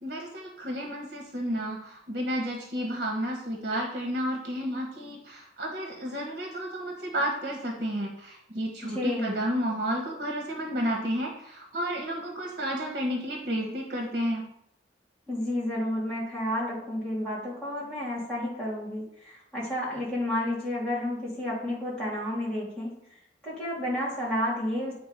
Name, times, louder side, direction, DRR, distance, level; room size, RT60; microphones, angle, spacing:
voice 1, 0.0-14.4, equal, 55° right, 1 dB, 1.3 m, -31 dB
voice 2, 8.9-9.3 15.3-23.0 23.4-24.9, left 1 dB, 5° left, -8 dB, 3.2 m, -31 dB
8.9 x 3.7 x 5.3 m, 0.75 s
head